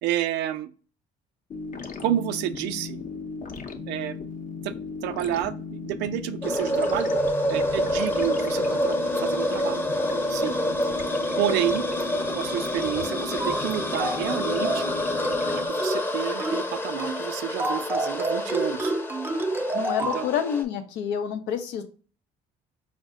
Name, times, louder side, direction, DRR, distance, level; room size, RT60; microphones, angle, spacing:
voice 1, 0.0-0.7 2.0-3.0 3.9-4.2 4.6-4.7 5.0-7.1 7.5-9.8 10.3-10.6 11.4-11.8 12.4-14.8 15.5-18.9 20.0-20.3, right 12 dB, 75° right, 11 dB, 0.4 m, -29 dB
sound 1, 1.5-15.7, left 4 dB, 45° left, 0.7 m, -36 dB
sound 2, 6.4-20.6, left 1 dB, 10° left, 0.7 m, -28 dB
sound 3, 13.4-13.7 14.0-14.3 14.6-14.9 15.2-15.5 15.8-16.1 16.4-16.7 17.0-17.2 17.6-20.2, right 2 dB, 10° right, 0.4 m, -29 dB
voice 2, 19.7-21.8, left 8 dB, 80° left, 6 dB, 0.7 m, -28 dB
4.5 x 2.1 x 3.6 m, 0.38 s
supercardioid pair, 70°, 18 cm